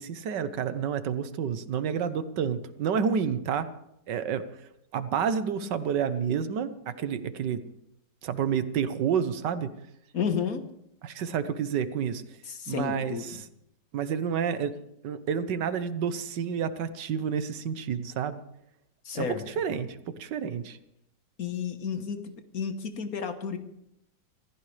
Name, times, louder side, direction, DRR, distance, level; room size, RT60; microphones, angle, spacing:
voice 1, 0.0-3.7 4.1-4.4 4.9-7.6 8.2-9.7 11.0-12.2 12.7-13.5 13.9-14.8 15.0-18.4 19.1-20.8, right 7 dB, 80° right, 12 dB, 1.6 m, -29 dB
voice 2, 10.1-10.7 12.5-13.4 19.0-19.5 21.4-23.6, left 6 dB, 60° left, 8 dB, 1.6 m, -32 dB
25.5 x 15.0 x 3.3 m, 0.79 s
omnidirectional pair, 1.9 m